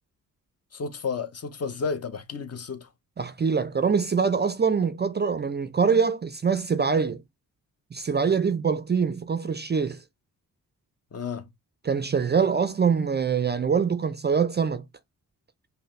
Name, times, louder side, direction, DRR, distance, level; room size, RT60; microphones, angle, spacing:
voice 1, 0.7-2.9 11.1-11.5, left 5 dB, 40° left, 0.7 m, -32 dB
voice 2, 3.2-7.2 7.9-10.0 11.8-14.8, right 6 dB, 30° right, 0.4 m, -24 dB
5.4 x 2.1 x 3.1 m
cardioid pair, 75°, 37 cm